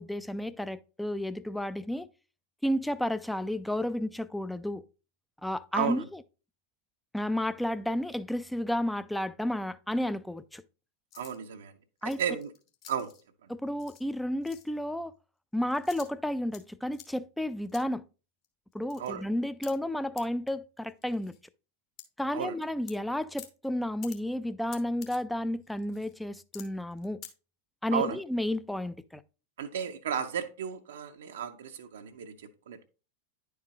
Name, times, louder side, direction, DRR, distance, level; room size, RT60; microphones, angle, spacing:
voice 1, 0.0-2.1 2.6-4.8 5.4-6.2 7.1-10.6 12.0-12.2 13.5-15.1 15.5-18.0 18.7-21.3 22.2-27.2 27.8-29.2, left 1 dB, 5° left, 0.3 m, -32 dB
sound 1, 11.1-11.4 12.0-13.2 13.8-14.1 14.4-14.7 15.7-16.7 16.9-17.1 17.7-17.8 18.4-18.5 18.7-19.1 19.6-19.7 20.2-20.3 20.5-20.6 20.9-21.4 22.0-22.1 22.4-22.9 23.4-23.5 24.0-24.2 24.7-25.2 25.6-26.1 26.5-26.6 26.9-27.3, left 9 dB, 40° left, 1.1 m, -49 dB
voice 2, 11.2-11.7 12.2-12.5 12.9-13.1 19.0-19.2 22.3-22.5 27.9-28.2 29.6-32.3 32.7-32.8, right 8 dB, 60° right, 0.5 m, -33 dB
9.8 x 4.7 x 2.8 m
figure-of-eight pair, 90°, 0 cm